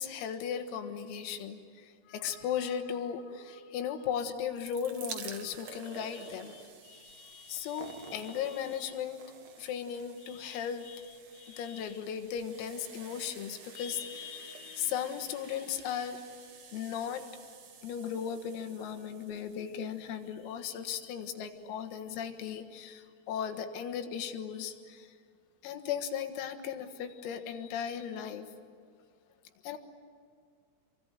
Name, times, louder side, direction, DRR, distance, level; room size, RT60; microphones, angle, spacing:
voice 1, 0.0-9.2 9.6-16.2 16.7-17.3 17.8-25.1 25.6-28.5 29.6-29.8, left 8 dB, 90° left, 7 dB, 4.3 m, -37 dB
sound 1, 4.3-21.3 22.1-22.2 22.4-22.5, right 6 dB, 75° right, 1.5 m, -50 dB
27.5 x 24.0 x 9.2 m, 2.1 s
omnidirectional pair, 6.0 m